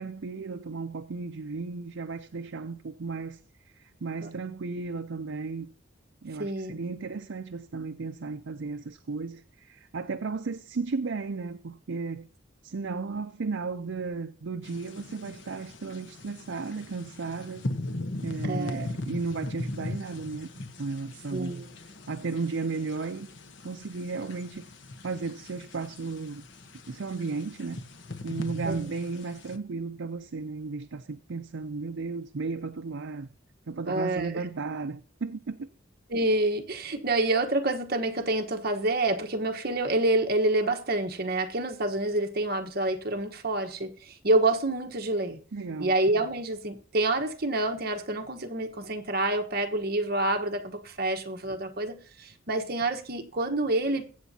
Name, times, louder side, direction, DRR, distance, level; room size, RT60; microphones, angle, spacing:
voice 1, 0.0-5.7 6.2-12.3 12.6-17.6 18.2-21.6 22.1-23.3 23.6-24.6 25.0-26.5 26.9-27.8 28.2-33.3 33.7-35.7 45.5-46.0, right 4 dB, 70° right, 0.5 m, -34 dB
voice 2, 6.4-6.8 18.4-18.9 21.3-21.7 28.6-28.8 33.9-34.3 36.1-45.4 45.8-54.1, right 2 dB, 50° right, 1.2 m, -27 dB
sound 1, 14.6-29.6, left 2 dB, 70° left, 1.1 m, -39 dB
22.0 x 8.2 x 2.8 m
head